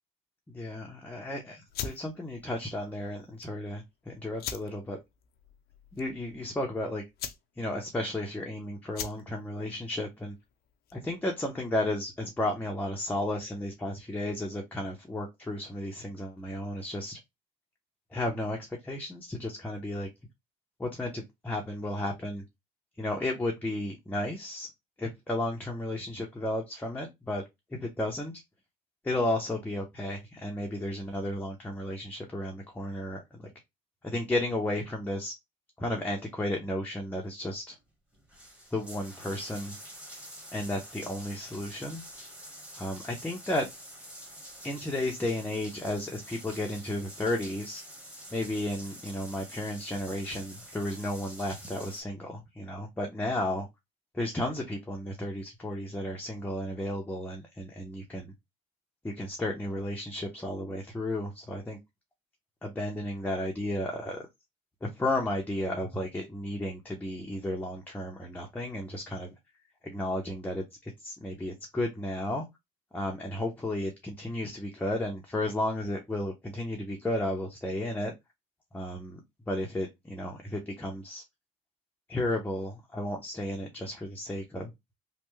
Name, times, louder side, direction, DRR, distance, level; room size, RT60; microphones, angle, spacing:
voice 1, 0.5-5.0 6.0-7.0 7.6-10.3 10.9-17.2 18.1-18.6 18.8-20.1 20.8-22.4 23.0-24.7 25.0-27.4 27.8-28.3 29.0-33.5 34.0-35.3 35.8-37.8 38.7-39.8 40.5-42.0 42.7-43.7 44.6-47.8 48.3-53.7 54.1-58.3 59.0-61.8 62.6-64.3 64.8-69.4 69.8-72.5 72.9-78.1 78.7-79.2 79.5-81.2 82.1-84.7, left 1 dB, 10° left, 0 dB, 0.7 m, -33 dB
sound 1, 1.7-11.2, left 8 dB, 70° left, 0.6 m, -43 dB
sound 2, 37.7-37.8 38.1-52.0, equal, 5° right, 1.3 m, -47 dB
3.3 x 2.2 x 3.1 m, 0.19 s
cardioid pair, 110°, 17 cm